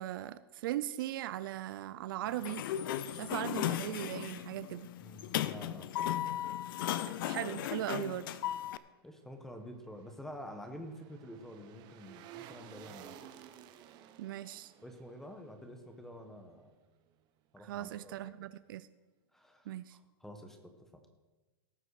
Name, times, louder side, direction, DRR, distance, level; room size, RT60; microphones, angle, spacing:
voice 1, 0.0-2.6 3.1-4.9 7.0-8.3 14.2-14.7 17.6-18.9 19.7-20.0, right 13 dB, 60° right, 14 dB, 0.5 m, -39 dB
Sliding door, 2.3-8.8, left 12 dB, 60° left, 0.6 m, -36 dB
voice 2, 5.0-5.9 9.0-13.2 14.8-16.7 17.5-18.1 19.3-20.8, equal, 5° left, 6 dB, 1.4 m, -48 dB
sound 1, 9.5-16.8 17.1-17.2, right 10 dB, 35° right, 0.9 m, -55 dB
18.0 x 7.5 x 5.0 m, 1.2 s
hypercardioid pair, 145°, 13 cm